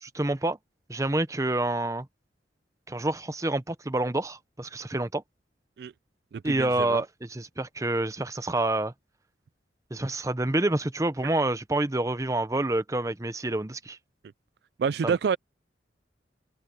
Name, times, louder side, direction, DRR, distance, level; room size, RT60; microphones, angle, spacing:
voice 1, 0.0-0.6 0.9-2.1 2.9-5.2 6.4-8.9 9.9-14.0 15.0-15.2, right 2 dB, 20° right, 0.7 m, -28 dB
voice 2, 6.3-7.0 14.8-15.4, right 6 dB, 65° right, 0.3 m, -28 dB
head